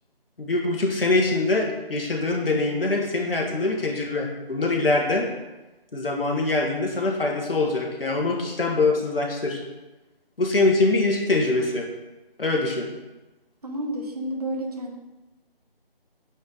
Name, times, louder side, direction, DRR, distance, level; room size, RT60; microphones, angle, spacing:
voice 1, 0.4-5.2 5.9-9.6 10.4-11.9 12.4-12.9, left 2 dB, 70° left, 0 dB, 1.4 m, -23 dB
voice 2, 13.6-15.0, right 1 dB, 40° right, 2 dB, 1.0 m, -30 dB
8.5 x 4.5 x 4.0 m, 1.1 s
figure-of-eight pair, 170°, 30 cm